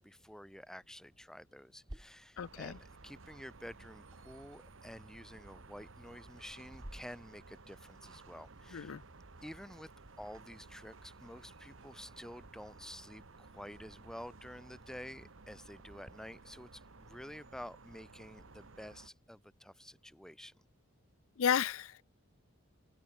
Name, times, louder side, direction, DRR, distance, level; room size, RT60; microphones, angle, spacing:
voice 1, 0.0-8.9 9.4-9.9 10.2-20.5, equal, 5° left, 1.1 m, -50 dB
sound 1, 1.9-16.1, right 1 dB, 20° right, 1.2 m, -59 dB
voice 2, 2.4-2.8 8.7-9.0 21.4-22.0, left 8 dB, 75° left, 0.4 m, -33 dB
sound 2, 2.4-19.1, right 3 dB, 65° right, 1.2 m, -56 dB
open air
head